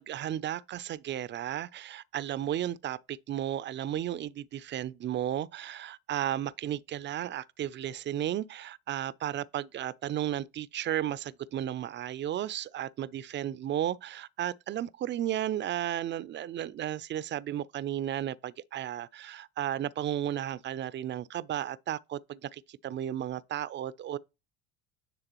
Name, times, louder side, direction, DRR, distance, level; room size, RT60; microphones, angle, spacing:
voice 1, 0.0-24.2, right 11 dB, 35° right, 0.5 m, -34 dB
9.9 x 3.4 x 3.0 m
hypercardioid pair, 70°, 32 cm